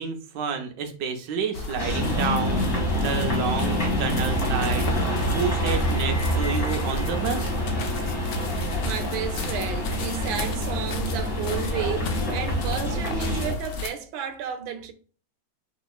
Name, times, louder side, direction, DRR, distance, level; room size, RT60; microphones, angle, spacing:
voice 1, 0.0-7.6, right 6 dB, 70° right, 1.3 m, -30 dB
sound 1, 1.5-13.9, left 3 dB, 70° left, 1.2 m, -34 dB
sound 2, 1.8-13.5, equal, 40° left, 1.8 m, -26 dB
voice 2, 8.8-14.9, right 8 dB, 90° right, 1.4 m, -32 dB
5.7 x 2.8 x 2.3 m
omnidirectional pair, 2.1 m